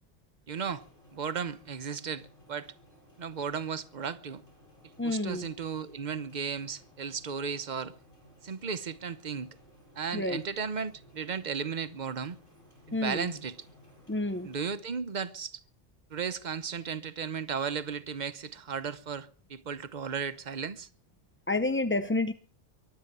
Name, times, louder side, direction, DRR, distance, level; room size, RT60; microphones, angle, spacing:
sound 1, 0.5-14.7, equal, 85° left, 7.9 m, -59 dB
voice 1, 0.5-0.8 1.1-2.7 3.2-4.4 5.0-7.9 8.4-9.6 9.9-12.4 12.9-13.5 14.4-15.6 16.1-20.9, right 6 dB, 40° right, 0.9 m, -35 dB
voice 2, 5.0-5.5 10.1-10.4 12.9-13.3 14.1-14.5 21.5-22.3, left 2 dB, 15° left, 0.4 m, -29 dB
23.0 x 8.9 x 6.8 m
omnidirectional pair, 1.3 m